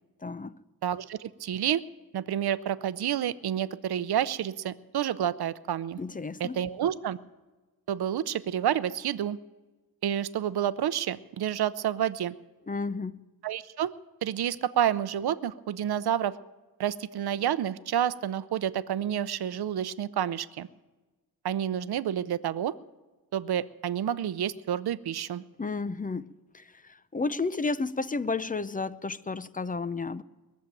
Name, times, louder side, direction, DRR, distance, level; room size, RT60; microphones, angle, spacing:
voice 1, 0.2-0.6 6.0-6.6 12.7-13.1 25.6-26.3 26.5-30.2, left 4 dB, 20° left, 0.5 m, -32 dB
voice 2, 0.8-1.8 2.1-6.0 6.4-7.2 7.9-9.4 10.0-12.3 13.4-13.9 14.2-16.4 16.8-20.7 21.4-22.7 23.3-25.4, right 10 dB, 75° right, 0.7 m, -29 dB
21.0 x 7.4 x 9.1 m
cardioid pair, 85°, 39 cm